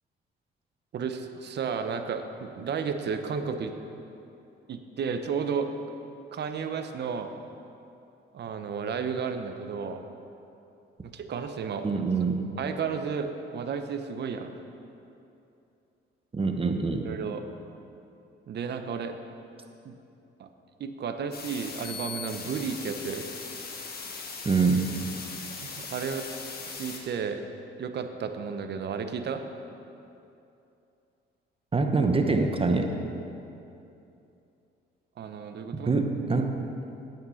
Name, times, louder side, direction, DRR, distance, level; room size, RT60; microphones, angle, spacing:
voice 1, 0.9-3.7 4.7-5.7 6.3-7.3 8.3-10.0 11.1-12.0 12.6-14.5 17.0-17.4 18.5-19.2 19.8-19.9 20.4-20.5 20.8-23.2 25.7-26.3 26.7-27.4 27.8-29.4 35.2-35.9, right 6 dB, 60° right, 7 dB, 0.9 m, -32 dB
voice 2, 11.8-12.4 16.3-17.0 24.4-24.9 31.7-32.9 35.7-36.6, right 4 dB, 30° right, 5 dB, 1.1 m, -25 dB
sound 1, 21.3-27.0, left 4 dB, 50° left, 1.5 m, -39 dB
9.2 x 8.9 x 5.7 m, 2.7 s
cardioid pair, 90°, 20 cm